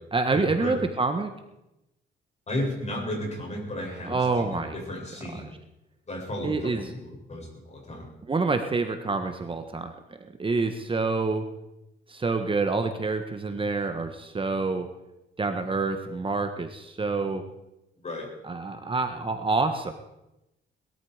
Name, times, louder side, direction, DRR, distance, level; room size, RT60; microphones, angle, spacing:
voice 1, 0.1-1.3 4.0-4.8 5.3-5.4 6.4-6.9 8.3-9.9 10.4-11.4 12.1-14.9 15.4-17.4 18.4-19.9, right 3 dB, 25° right, 7 dB, 1.4 m, -27 dB
voice 2, 2.5-5.5 6.1-6.7 7.0-8.1 18.0-18.3, left 1 dB, 35° left, -1 dB, 7.9 m, -34 dB
21.0 x 13.5 x 5.1 m, 0.92 s
cardioid pair, 90°, 20 cm